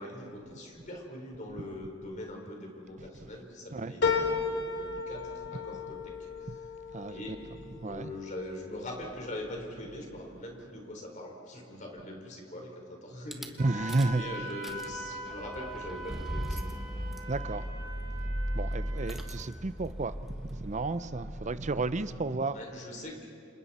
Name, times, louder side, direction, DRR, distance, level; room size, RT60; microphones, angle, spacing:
voice 1, 0.0-6.5 7.1-7.4 7.7-13.6 14.1-16.7 22.5-23.3, left 1 dB, 40° left, 4.3 m, -42 dB
sound 1, 4.0-8.8 9.3-10.0 10.3-10.4, left 4 dB, 65° left, 3.5 m, -34 dB
voice 2, 6.9-7.4 7.8-8.1 13.6-14.2 17.3-17.7 18.5-22.5, right 3 dB, 40° right, 0.6 m, -32 dB
Rattle / Car / Engine starting, 13.3-13.5 13.9-14.2 14.5-22.2, equal, ahead, 1.5 m, -38 dB
Wind instrument woodwind instrument, 13.6-19.3, right 2 dB, 60° right, 6.2 m, -42 dB
29.5 x 27.0 x 4.3 m
head